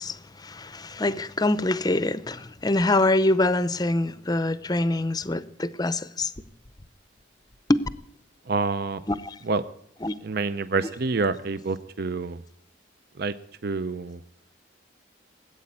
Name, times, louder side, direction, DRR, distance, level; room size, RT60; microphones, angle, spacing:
voice 1, 0.0-6.3 7.7-7.9 9.1-9.4 10.0-10.1 10.8-10.9, left 2 dB, 20° left, 0.6 m, -25 dB
voice 2, 8.5-9.0 9.4-9.6 10.2-12.4 13.2-13.3 13.6-14.2, right 4 dB, 55° right, 0.6 m, -27 dB
18.5 x 8.8 x 8.6 m
head